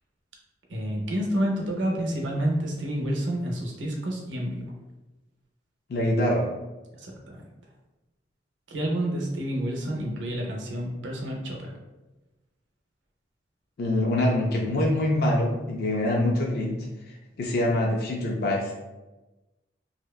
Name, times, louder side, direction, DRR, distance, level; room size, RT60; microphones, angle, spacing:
voice 1, 0.7-4.7 7.0-7.4 8.7-11.7, right 1 dB, 85° right, 0 dB, 0.5 m, -29 dB
voice 2, 5.9-6.4 13.8-16.8 17.4-18.7, left 1 dB, 60° left, -1 dB, 0.4 m, -24 dB
2.7 x 2.1 x 2.2 m, 1.1 s
head